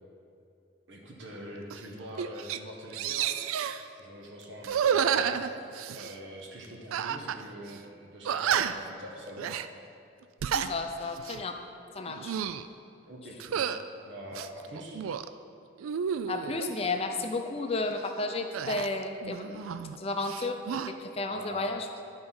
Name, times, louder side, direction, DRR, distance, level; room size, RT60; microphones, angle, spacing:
voice 1, 0.9-3.3 3.9-5.4 5.9-9.5 13.1-13.6 14.1-15.0 21.3-21.9, equal, 65° right, -1 dB, 1.1 m, -44 dB
sound 1, 1.7-1.9 2.2-2.6 2.9-3.8 4.6-6.1 6.9-7.4 7.7-7.8 8.2-8.9 9.4-9.7 10.2-10.7 11.2-11.4 12.1-12.7 13.4-13.8 14.3-15.3 15.8-16.7 18.5-20.0 20.2-20.9, right 8 dB, 90° right, 0.3 m, -30 dB
voice 2, 10.5-11.6 11.9-12.3 16.3-20.6 20.9-21.9, left 3 dB, 30° left, 5 dB, 0.5 m, -33 dB
11.5 x 4.5 x 5.5 m, 2.5 s
head